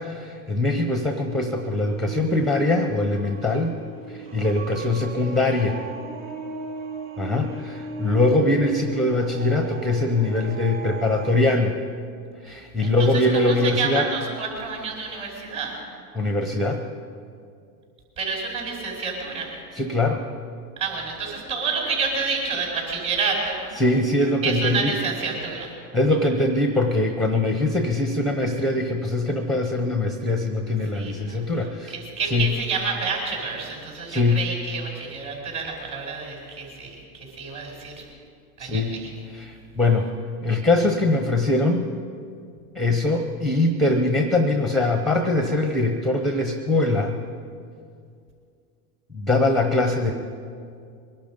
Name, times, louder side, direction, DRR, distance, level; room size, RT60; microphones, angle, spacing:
voice 1, 0.0-3.7 4.1-5.8 7.2-11.8 12.4-14.1 16.1-16.8 19.7-20.2 23.8-25.0 25.9-31.9 32.3-32.5 34.1-34.4 38.6-38.9 39.3-40.1 40.4-41.9 42.7-47.2 49.1-50.1, left 2 dB, ahead, 5 dB, 0.6 m, -22 dB
sound 1, 1.1-11.6, right 3 dB, 60° right, 2.2 m, -37 dB
voice 2, 13.3-15.8 18.2-19.5 20.8-23.6 24.4-25.7 30.9-31.4 31.9-38.0 38.6-39.0, right 4 dB, 40° right, 0 dB, 5.3 m, -29 dB
22.5 x 11.5 x 5.2 m, 2.3 s
supercardioid pair, 135°, 46 cm